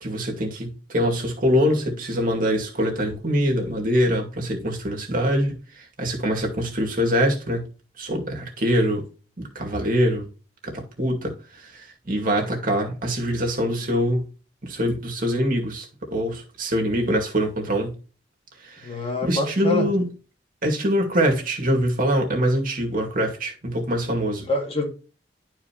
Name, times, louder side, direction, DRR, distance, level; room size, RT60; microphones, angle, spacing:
voice 1, 0.0-7.6 8.0-9.0 9.4-10.3 10.6-14.2 14.6-18.0 18.6-18.9 19.2-20.1 20.6-24.5, equal, 50° right, 2.2 m, -24 dB
voice 2, 18.8-19.9 24.4-24.9, left 2 dB, 35° left, 2.2 m, -25 dB
12.0 x 4.7 x 2.9 m
head